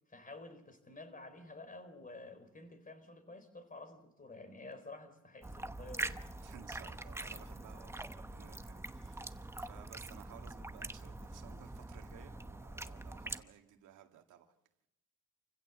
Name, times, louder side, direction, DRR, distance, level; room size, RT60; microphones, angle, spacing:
voice 1, 0.1-6.2, left 2 dB, 25° left, 4.4 m, -51 dB
sound 1, 5.4-13.4, right 2 dB, 10° right, 1.0 m, -44 dB
voice 2, 6.4-14.5, right 10 dB, 85° right, 2.1 m, -57 dB
28.5 x 16.0 x 7.4 m
cardioid pair, 90°, 30 cm